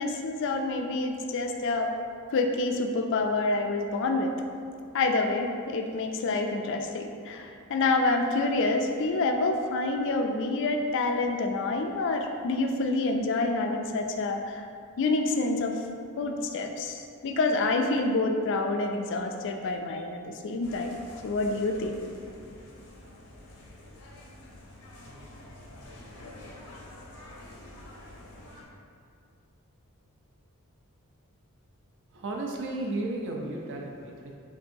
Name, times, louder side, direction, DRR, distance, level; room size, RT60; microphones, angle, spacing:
voice 1, 0.0-1.9 2.3-4.3 4.9-14.6 15.0-15.7 16.2-21.0 21.2-22.0, left 3 dB, 55° left, 4 dB, 0.3 m, -27 dB
sound 1, 20.6-28.6, left 1 dB, 80° left, 0.7 m, -48 dB
voice 2, 32.1-34.4, right 2 dB, 55° right, -1 dB, 0.5 m, -34 dB
5.8 x 2.6 x 2.6 m, 2.3 s
head